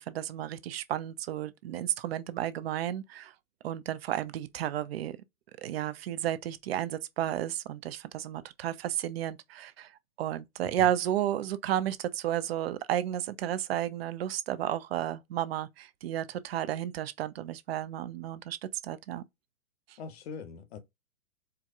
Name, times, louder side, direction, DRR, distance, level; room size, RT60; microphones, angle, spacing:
voice 1, 0.0-3.3 3.6-5.2 5.6-9.9 10.2-18.6 18.8-19.2, right 11 dB, 45° right, 0.5 m, -32 dB
voice 2, 20.0-20.8, left 6 dB, 50° left, 0.9 m, -42 dB
4.6 x 2.2 x 2.4 m
hypercardioid pair, 135°, 42 cm